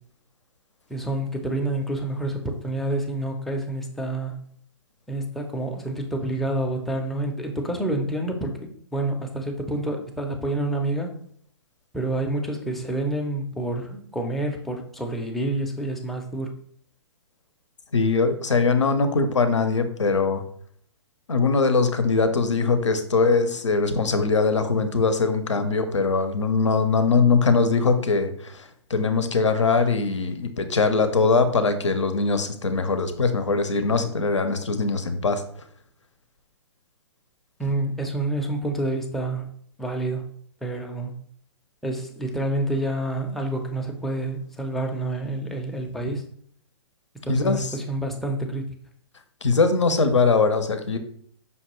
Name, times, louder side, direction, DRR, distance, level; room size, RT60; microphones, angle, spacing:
voice 1, 0.9-4.4 5.1-11.1 11.9-16.5 37.6-39.5 39.8-40.3 40.6-41.1 41.8-46.2 47.2-48.6, right 1 dB, ahead, 1 dB, 0.4 m, -28 dB
voice 2, 17.9-20.4 21.3-35.4 47.3-47.7 49.4-51.0, left 4 dB, 90° left, 9 dB, 0.6 m, -21 dB
5.3 x 2.2 x 3.0 m, 0.62 s
hypercardioid pair, 130°, 15 cm